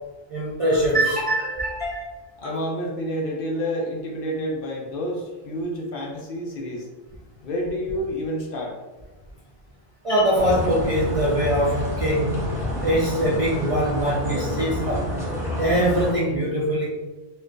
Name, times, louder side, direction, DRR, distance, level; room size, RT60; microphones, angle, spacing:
voice 1, 0.3-2.1 2.4-2.6 10.0-12.4 12.8-15.1 15.6-16.8, right 1 dB, 45° right, -6 dB, 0.4 m, -22 dB
voice 2, 2.4-6.9 7.4-8.7, equal, 60° left, 0 dB, 0.7 m, -29 dB
sound 1, 10.3-16.1, left 1 dB, 5° right, 0.7 m, -29 dB
4.2 x 2.3 x 2.4 m, 1.2 s
omnidirectional pair, 1.1 m